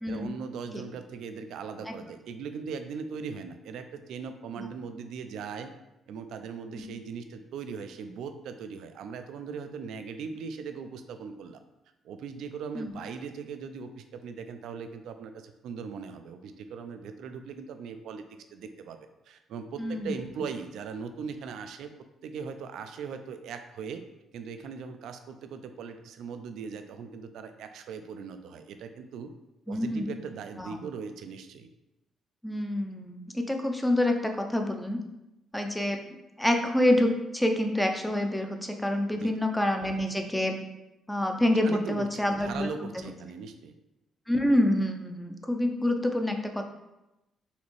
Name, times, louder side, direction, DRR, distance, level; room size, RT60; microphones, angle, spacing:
voice 1, 0.1-5.7 6.1-11.6 12.0-18.2 18.5-19.0 19.3-21.9 22.2-24.0 24.3-29.3 29.7-31.7 39.1-39.4 41.6-43.7, right 6 dB, 80° right, 8 dB, 0.4 m, -39 dB
voice 2, 19.8-20.3 29.7-30.1 30.6-30.8 32.4-35.0 35.5-36.0 36.4-40.6 41.1-42.7 42.9-43.1 44.3-46.7, left 1 dB, 5° left, 4 dB, 0.5 m, -27 dB
4.2 x 2.8 x 3.1 m, 0.94 s
cardioid pair, 90°, 0 cm